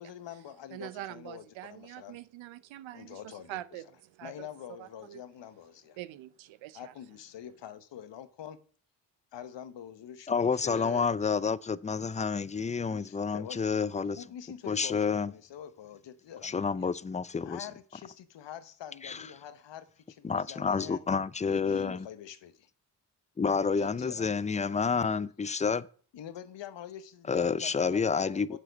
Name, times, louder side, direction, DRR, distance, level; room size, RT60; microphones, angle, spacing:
voice 1, 0.0-2.2 2.9-3.8 4.2-6.0 6.7-8.6 9.3-11.1 12.9-13.6 14.0-16.9 17.4-21.0 21.5-22.7 23.8-24.4 26.1-28.6, left 10 dB, 70° left, 1.1 m, -45 dB
voice 2, 0.7-4.5 4.8-5.2 6.0-6.9, right 14 dB, 85° right, 0.7 m, -44 dB
voice 3, 10.3-14.2 14.7-15.3 16.4-17.7 19.0-19.2 20.2-22.1 23.4-25.9 27.3-28.6, left 5 dB, 15° left, 0.4 m, -29 dB
7.6 x 6.6 x 5.2 m
supercardioid pair, 60°, 45 cm